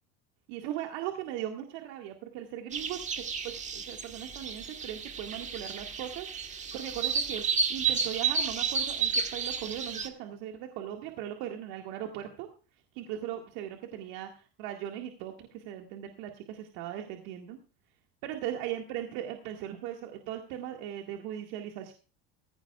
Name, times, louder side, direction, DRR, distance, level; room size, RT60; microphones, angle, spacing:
voice 1, 0.5-12.5 12.9-17.6 18.2-21.9, right 11 dB, 70° right, 3 dB, 1.9 m, -39 dB
sound 1, 2.7-10.1, right 5 dB, 25° right, 1.5 m, -32 dB
15.5 x 15.5 x 2.4 m, 0.35 s
supercardioid pair, 125°, 29 cm